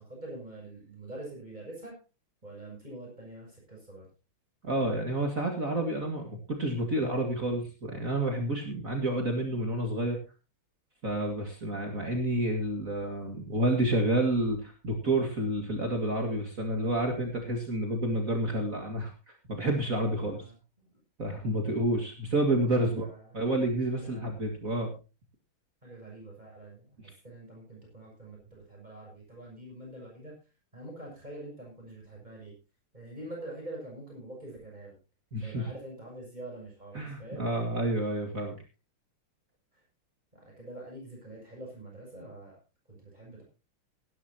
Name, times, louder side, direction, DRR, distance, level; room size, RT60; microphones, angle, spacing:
voice 1, 0.0-1.9 2.4-4.1 20.2-20.5 20.8-20.9 22.8-23.3 24.0-24.2 25.8-30.3 30.7-32.5 32.9-34.9 35.4-37.4 39.7-39.8 40.3-42.6 42.9-43.4, right 1 dB, 20° right, -2 dB, 7.3 m, -45 dB
voice 2, 4.6-10.2 11.0-20.4 21.2-23.1 23.3-24.9 35.3-35.7 36.9-38.5, right 1 dB, 40° right, 2 dB, 2.5 m, -29 dB
18.5 x 11.5 x 2.8 m, 0.31 s
omnidirectional pair, 2.3 m